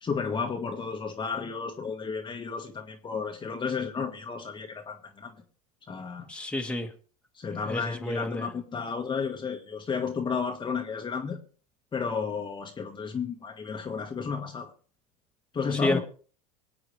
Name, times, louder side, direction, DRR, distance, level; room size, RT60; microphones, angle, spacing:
voice 1, 0.0-5.3 5.9-6.3 7.3-11.4 11.9-14.7 15.5-16.0, left 5 dB, 25° left, 1.6 m, -32 dB
voice 2, 6.3-6.9 7.7-8.5 15.8-16.0, left 1 dB, 5° left, 1.8 m, -30 dB
25.0 x 8.6 x 3.3 m
hypercardioid pair, 95°, 20 cm